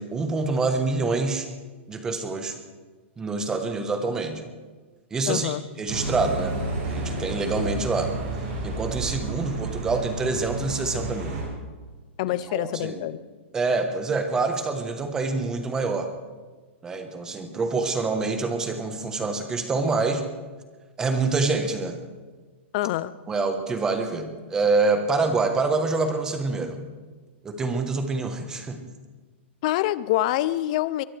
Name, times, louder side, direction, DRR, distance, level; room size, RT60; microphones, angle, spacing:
voice 1, 0.0-1.5 1.9-2.6 3.2-4.4 5.1-6.6 6.9-8.1 8.6-11.4 12.5-13.0 13.5-16.1 16.8-20.2 21.0-22.0 23.3-26.8 27.4-28.8, right 3 dB, 10° right, 7 dB, 1.1 m, -26 dB
voice 2, 5.3-5.6 12.2-13.2 22.7-23.1 29.6-31.0, left 14 dB, 35° left, 17 dB, 0.5 m, -25 dB
sound 1, 5.9-11.4, right 2 dB, 40° right, 6.9 m, -31 dB
23.0 x 17.0 x 3.4 m, 1.4 s
hypercardioid pair, 170°, 7 cm